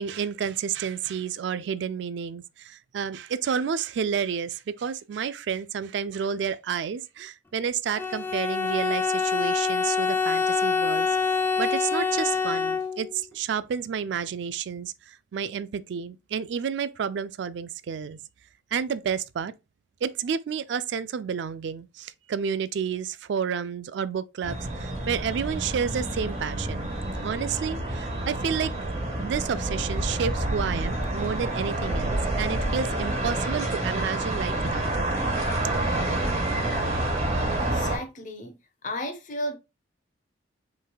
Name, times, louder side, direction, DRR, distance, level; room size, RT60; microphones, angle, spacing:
voice 1, 0.0-11.1 11.6-18.2 18.7-19.5 20.0-26.9 27.2-28.9 29.2-35.1, right 7 dB, 65° right, 0.3 m, -30 dB
Bowed string instrument, 8.0-13.2, left 5 dB, 10° left, 0.4 m, -26 dB
sound 1, 24.4-38.0, right 1 dB, 35° right, 1.5 m, -28 dB
voice 2, 37.6-38.6 38.8-39.6, left 1 dB, 45° left, 0.8 m, -33 dB
5.6 x 3.3 x 2.3 m
head